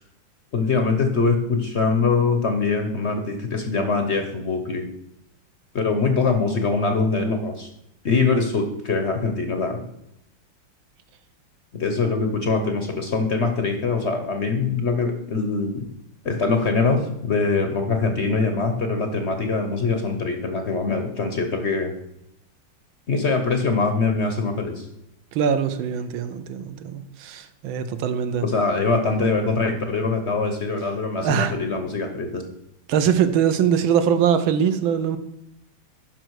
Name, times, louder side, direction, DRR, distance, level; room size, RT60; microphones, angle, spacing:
voice 1, 0.5-4.9 5.7-7.7 8.0-9.8 11.7-15.9 16.2-21.9 23.1-24.9 28.4-32.4, left 4 dB, 55° left, 0.7 m, -23 dB
voice 2, 25.3-28.4 31.2-31.5 32.9-35.2, right 8 dB, 75° right, 1.5 m, -22 dB
12.0 x 5.1 x 4.6 m
omnidirectional pair, 2.3 m